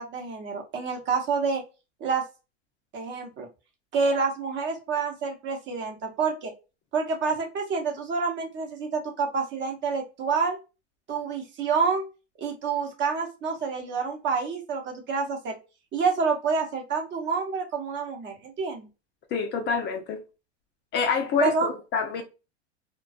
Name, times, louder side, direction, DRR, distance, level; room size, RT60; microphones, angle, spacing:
voice 1, 0.0-1.6 2.0-2.2 2.9-3.5 3.9-6.5 6.9-10.6 11.1-12.1 12.4-15.6 15.9-18.9 21.4-21.7, right 5 dB, 35° right, 0.8 m, -28 dB
voice 2, 19.3-20.2 20.9-22.2, left 6 dB, 35° left, 0.5 m, -26 dB
2.4 x 2.2 x 2.4 m
hypercardioid pair, 110°, 34 cm